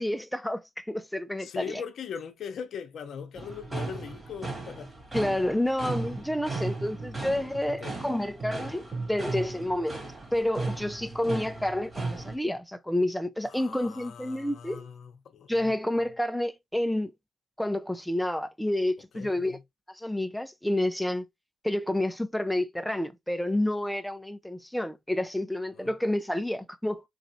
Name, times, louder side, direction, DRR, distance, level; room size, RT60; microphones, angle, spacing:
voice 1, 0.0-1.8 5.1-10.0 10.3-14.9 15.5-17.1 17.6-19.6 19.9-21.3 21.6-27.0, left 1 dB, 5° left, 0.5 m, -29 dB
voice 2, 1.4-5.0 7.7-8.0 13.4-15.7 19.1-19.6 25.7-25.9, left 7 dB, 65° left, 0.8 m, -40 dB
sound 1, 3.4-12.4, right 3 dB, 25° right, 2.7 m, -36 dB
4.0 x 3.2 x 2.7 m
cardioid pair, 75°, 0 cm